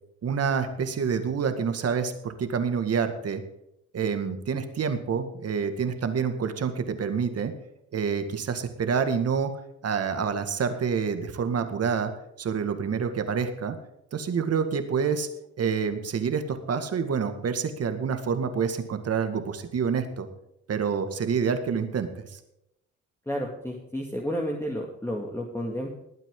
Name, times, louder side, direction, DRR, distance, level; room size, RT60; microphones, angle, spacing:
voice 1, 0.2-3.4 3.9-7.5 7.9-9.5 9.8-12.1 12.4-13.8 14.1-15.3 15.6-20.3 20.7-22.4, right 6 dB, 55° right, 8 dB, 2.0 m, -27 dB
voice 2, 23.3-26.0, equal, 10° left, 0 dB, 2.2 m, -31 dB
20.5 x 9.1 x 3.9 m, 0.80 s
cardioid pair, 90°, 30 cm